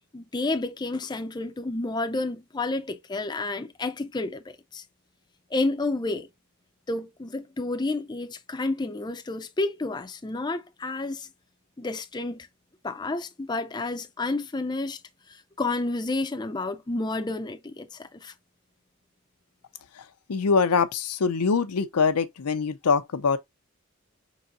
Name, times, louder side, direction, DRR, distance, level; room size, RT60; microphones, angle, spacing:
voice 1, 0.1-4.8 5.5-6.3 6.9-11.3 11.8-12.5 12.8-15.0 15.3-18.3, left 2 dB, 20° left, 0.4 m, -30 dB
voice 2, 20.3-23.4, left 5 dB, 90° left, 0.6 m, -23 dB
5.4 x 4.0 x 2.4 m
head